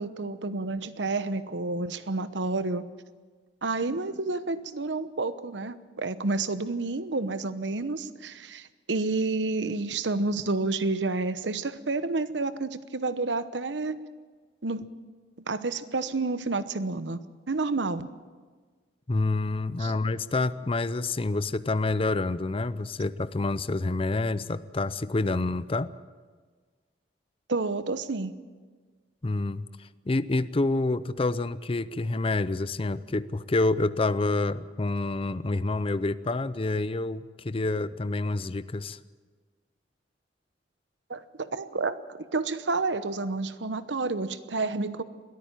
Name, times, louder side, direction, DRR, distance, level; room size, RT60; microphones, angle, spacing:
voice 1, 0.0-2.8 3.6-14.0 14.6-14.9 15.5-17.2 17.5-18.1 19.8-19.9 27.5-28.3 41.1-45.0, right 3 dB, 80° right, 13 dB, 1.0 m, -30 dB
voice 2, 19.1-25.9 29.2-39.0, left 2 dB, 30° left, 14 dB, 0.6 m, -28 dB
22.0 x 14.0 x 9.0 m, 1.5 s
head